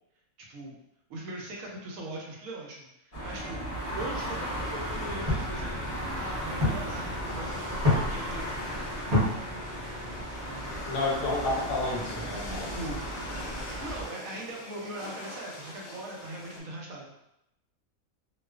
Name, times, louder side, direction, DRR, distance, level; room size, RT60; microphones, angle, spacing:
voice 1, 1.1-3.6 3.9-8.8 10.5-10.7 12.7-13.0 13.7-17.2, right 1 dB, 75° right, -2 dB, 1.0 m, -40 dB
sound 1, 3.1-14.1, equal, 35° left, 0.7 m, -35 dB
sound 2, 4.5-10.2, left 2 dB, 35° right, 0.8 m, -32 dB
sound 3, 6.6-16.6, left 2 dB, 90° left, 0.4 m, -45 dB
voice 2, 10.9-12.8, left 2 dB, 75° left, -2 dB, 1.0 m, -30 dB
2.4 x 2.3 x 2.3 m, 0.85 s
omnidirectional pair, 1.5 m